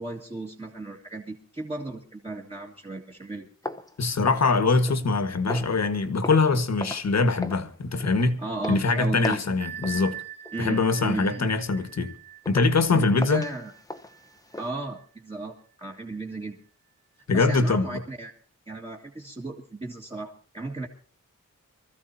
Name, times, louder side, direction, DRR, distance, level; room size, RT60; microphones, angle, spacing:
voice 1, 0.0-3.5 8.4-9.4 10.5-11.5 12.9-13.7 14.6-16.6 17.3-18.3 18.7-20.9, right 2 dB, 20° right, 2.0 m, -35 dB
sound 1, 3.6-5.1 5.5-5.8 6.2-6.5 6.8-7.1 7.4-7.7 8.0-8.2 8.6-8.9 9.2-9.5 9.8-10.0 10.4-10.7 11.2-11.3 11.8-11.9 12.4-12.8 13.2-14.7, left 2 dB, 10° left, 0.9 m, -38 dB
voice 2, 4.0-8.4 8.7-10.2 10.6-12.1 12.5-13.5 17.3-18.0, left 3 dB, 55° left, 1.6 m, -23 dB
Bell, 9.6-15.0, right 12 dB, 85° right, 1.5 m, -42 dB
24.5 x 14.5 x 2.8 m
wide cardioid pair, 175°, 32 cm